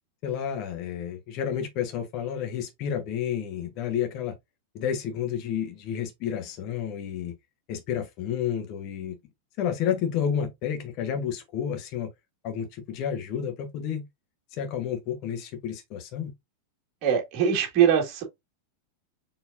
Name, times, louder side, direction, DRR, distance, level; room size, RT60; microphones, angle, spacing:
voice 1, 0.2-4.4 4.7-7.4 7.7-9.1 9.6-12.1 12.4-14.1 14.5-16.3, left 8 dB, 40° left, 1.0 m, -30 dB
voice 2, 17.0-18.2, right 8 dB, 40° right, 1.9 m, -22 dB
4.4 x 3.6 x 2.6 m
figure-of-eight pair, 90°, 0 cm